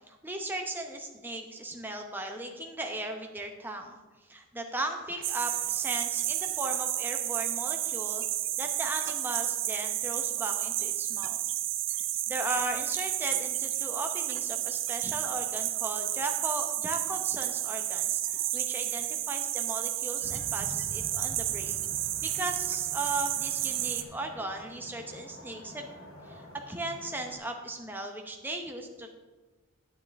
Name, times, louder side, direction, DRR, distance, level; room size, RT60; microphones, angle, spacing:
voice 1, 0.1-8.2 8.6-11.4 11.9-21.8 22.2-25.9 26.2-29.2, right 2 dB, 10° right, 3 dB, 0.8 m, -37 dB
sound 1, 5.2-24.0, right 13 dB, 55° right, 0.5 m, -31 dB
sound 2, 20.2-27.4, equal, 65° left, 1.7 m, -47 dB
9.5 x 9.2 x 3.5 m, 1.3 s
head